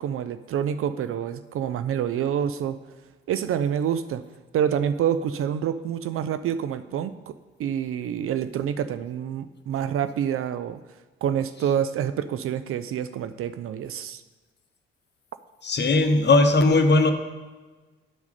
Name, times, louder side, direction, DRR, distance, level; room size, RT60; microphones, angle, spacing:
voice 1, 0.0-2.8 3.3-4.2 4.5-10.8 11.2-14.2, right 9 dB, 45° right, 11 dB, 0.5 m, -27 dB
voice 2, 15.6-17.1, left 2 dB, 35° left, 7 dB, 1.0 m, -18 dB
9.8 x 4.7 x 5.3 m, 1.3 s
figure-of-eight pair, 45°, 32 cm